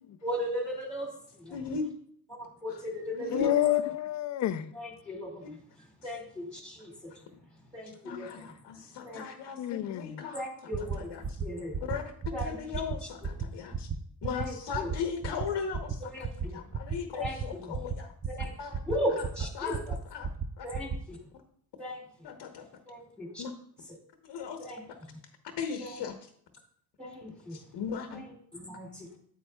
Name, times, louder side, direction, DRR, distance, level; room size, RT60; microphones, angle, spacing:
voice 1, 0.2-1.5 2.3-3.6 4.7-5.4 6.0-7.1 7.7-8.5 8.8-9.2 10.3-11.1 11.4-11.8 12.3-12.6 14.2-14.9 16.1-16.6 17.1-17.7 18.3-18.5 18.9-19.9 20.6-21.2 21.8-22.0 22.9-23.4 24.6-24.8 25.8-25.9 27.0-27.6 28.1-28.2 28.5-29.2, equal, ahead, 2.1 m, -37 dB
voice 2, 1.5-1.8 2.7-2.8 3.1-3.5 5.4-5.5 6.0-6.1 8.0-10.5 10.8-11.4 11.8-12.0 12.4-13.9 14.2-16.3 16.5-18.8 19.2-19.3 19.5-20.3 20.6-20.7 22.2-22.7 23.4-23.5 24.2-25.0 25.6-26.1 27.5-28.2, left 6 dB, 65° left, 1.0 m, -38 dB
voice 3, 3.3-4.7 8.1-8.3 9.6-10.2, left 12 dB, 40° left, 0.4 m, -29 dB
sound 1, 10.7-11.0 11.2-11.5 11.7-12.0 12.2-12.5 12.7-13.0 13.2-13.5 13.7-14.0 14.2-14.4 14.7-15.0 15.2-15.4 15.7-16.0 16.2-16.5 16.7-17.0 17.2-17.5 17.7-18.0 18.2-18.5 18.7-19.0 19.2-19.5 19.7-20.0 20.2-20.5 20.7-21.0, right 6 dB, 20° right, 0.3 m, -33 dB
9.0 x 8.3 x 2.3 m
cardioid pair, 110°, 45 cm